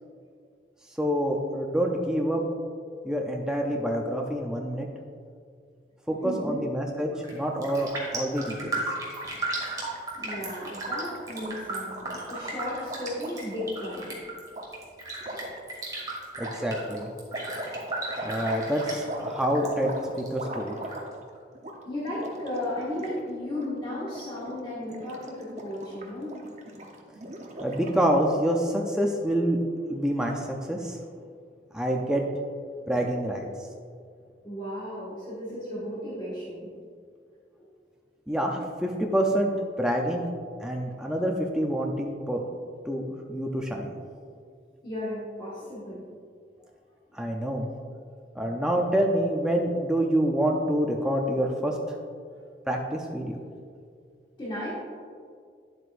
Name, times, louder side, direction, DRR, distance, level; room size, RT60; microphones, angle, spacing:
voice 1, 1.0-2.4 3.0-4.9 6.1-8.8 16.4-17.1 18.2-20.8 27.6-29.6 29.9-31.0 31.7-32.2 32.9-33.5 38.3-39.5 39.8-40.2 40.6-42.4 42.9-43.9 47.1-47.7 48.4-51.8 52.7-53.4, right 1 dB, 5° right, 0 dB, 0.5 m, -27 dB
voice 2, 6.1-6.7 10.1-14.1 18.0-18.2 21.9-26.3 33.6-33.7 34.4-36.7 44.8-46.0 54.4-54.7, left 1 dB, 30° left, -8 dB, 1.7 m, -35 dB
Raindrop, 7.1-7.4 7.6-19.7 20.0-21.0 21.4-21.5, right 2 dB, 20° right, 1.7 m, -35 dB
Gurgling, 9.3-13.9 14.5-14.7 15.2-15.6 16.3-21.3 21.5-21.7 22.0-23.2 23.4-23.7 24.0-24.5 24.8-28.2, right 1 dB, 40° right, 0.9 m, -39 dB
9.9 x 7.8 x 2.5 m, 2.2 s
head